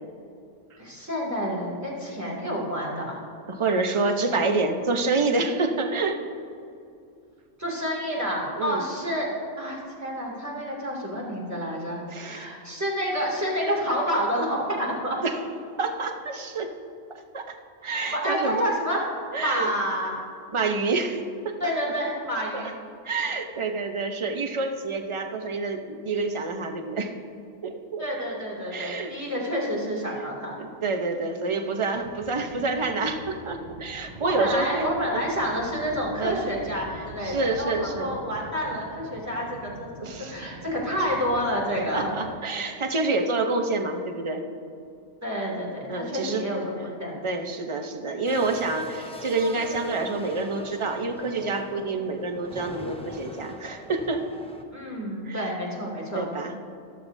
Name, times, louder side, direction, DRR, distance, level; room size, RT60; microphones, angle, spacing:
voice 1, 0.8-3.2 7.6-9.3 9.6-15.2 17.8-19.0 19.4-20.2 21.6-22.7 28.0-30.6 33.9-42.1 45.2-47.1 54.7-56.3, equal, 15° right, -4 dB, 2.5 m, -29 dB
voice 2, 3.5-6.2 8.6-8.8 12.1-12.5 15.2-15.4 15.8-16.7 17.3-17.5 17.8-18.7 19.3-19.7 20.5-21.7 22.5-22.6 23.0-27.1 27.6-28.0 28.7-29.1 30.2-30.3 30.6-35.2 36.2-36.4 36.9-38.1 40.0-40.4 41.9-44.4 45.9-46.4 46.8-46.9 47.2-54.2 55.3-55.5 56.1-56.6, right 3 dB, 30° right, 5 dB, 0.7 m, -28 dB
sound 1, 31.9-42.3, right 1 dB, 50° right, 1.6 m, -45 dB
sound 2, 48.2-54.6, left 1 dB, 5° left, 0.5 m, -41 dB
13.5 x 13.0 x 2.7 m, 2.5 s
omnidirectional pair, 1.3 m